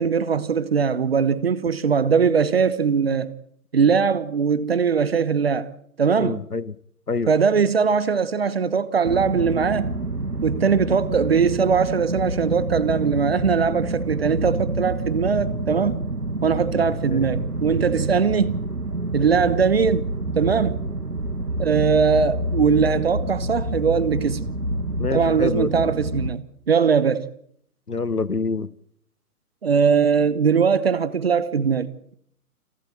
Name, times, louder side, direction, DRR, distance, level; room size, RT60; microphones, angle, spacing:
voice 1, 0.0-3.3 3.7-5.7 6.0-6.4 7.3-9.9 10.4-16.0 16.4-18.6 19.1-20.1 20.3-20.8 21.6-24.4 25.1-27.3 29.6-32.1, right 6 dB, 40° right, 1.3 m, -21 dB
voice 2, 6.1-6.7 7.1-7.3 17.1-17.3 25.0-25.8 27.9-28.7, left 4 dB, 85° left, 1.3 m, -26 dB
sound 1, 9.0-26.3, right 1 dB, 90° right, 1.7 m, -28 dB
29.5 x 13.0 x 9.0 m
figure-of-eight pair, 140°, 45 cm